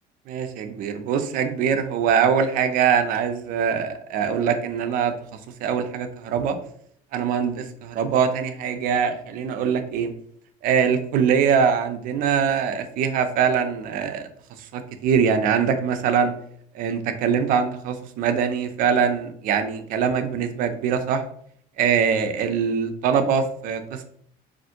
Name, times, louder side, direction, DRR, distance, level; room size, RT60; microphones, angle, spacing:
voice 1, 0.3-5.1 5.6-6.6 7.1-10.1 10.6-14.3 14.7-16.3 16.7-21.2 21.8-24.1, right 7 dB, 55° right, 8 dB, 0.4 m, -23 dB
3.3 x 2.5 x 2.8 m, 0.63 s
cardioid pair, 170°, 17 cm